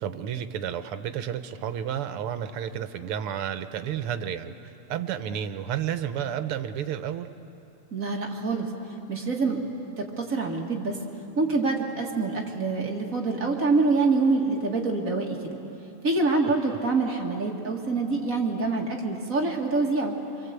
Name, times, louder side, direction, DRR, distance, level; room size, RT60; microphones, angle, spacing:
voice 1, 0.0-7.3, right 9 dB, 85° right, 10 dB, 1.9 m, -31 dB
voice 2, 7.9-8.7 9.1-9.6 10.0-11.0 11.4-15.6 16.0-20.1, right 3 dB, 40° right, 0 dB, 2.3 m, -26 dB
27.0 x 23.0 x 8.2 m, 3.0 s
omnidirectional pair, 2.4 m